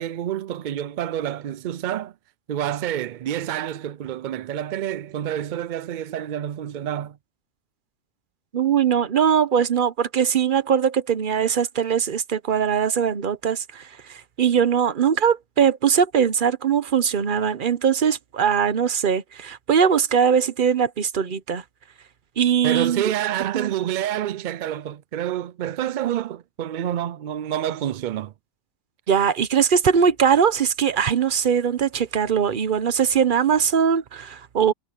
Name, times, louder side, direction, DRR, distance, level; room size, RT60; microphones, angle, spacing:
voice 1, 0.0-2.1 2.5-7.2 22.6-28.3, right 11 dB, 75° right, 0.4 m, -28 dB
voice 2, 8.5-21.6 22.4-23.1 23.5-23.7 29.1-34.7, right 7 dB, 45° right, 0.9 m, -21 dB
omnidirectional pair, 1.3 m